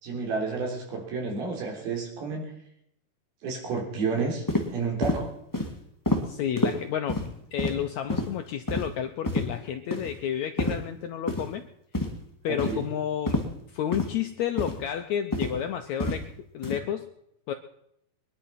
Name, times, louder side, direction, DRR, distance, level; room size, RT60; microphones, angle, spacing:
voice 1, 0.0-2.5 3.4-5.3 12.5-12.8, right 4 dB, 90° right, 1 dB, 5.6 m, -31 dB
sound 1, 4.5-4.6 5.0-5.2 5.5-5.7 6.0-6.2 6.6-6.7 7.1-7.3 7.6-7.7 8.1-8.3 8.7-8.8 9.2-9.4 9.9-10.1 10.6-10.7 11.3-11.5 11.9-12.1 12.6-12.8 13.3-13.4 13.9-14.1 14.6-14.8 15.3-15.5 16.0-16.2 16.6-16.8, left 2 dB, 10° left, 0.8 m, -27 dB
voice 2, 6.2-7.3 7.5-11.7 12.4-16.3 16.5-17.1 17.5-17.6, left 9 dB, 90° left, 6 dB, 1.6 m, -31 dB
22.0 x 11.5 x 5.8 m, 0.76 s
omnidirectional pair, 4.2 m